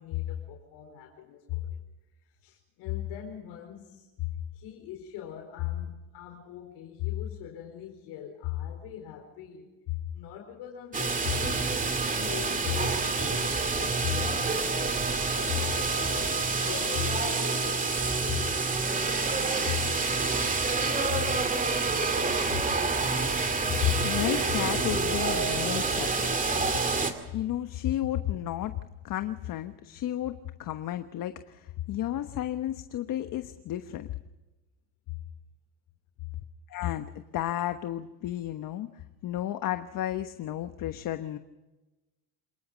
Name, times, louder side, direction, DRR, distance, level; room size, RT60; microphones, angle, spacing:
voice 1, 0.0-1.8 2.2-15.9 16.3-18.6 19.6-19.8 21.1-21.2 22.5-22.6 35.1-35.2, left 13 dB, 70° left, 1 dB, 4.7 m, -37 dB
sound 1, 10.9-27.1, right 4 dB, 20° right, 2.4 m, -28 dB
voice 2, 23.8-26.4 27.3-34.1 36.7-38.9 39.2-41.4, left 13 dB, 50° left, 9 dB, 1.2 m, -32 dB
27.5 x 20.0 x 5.2 m, 1.1 s
cardioid pair, 135°, 42 cm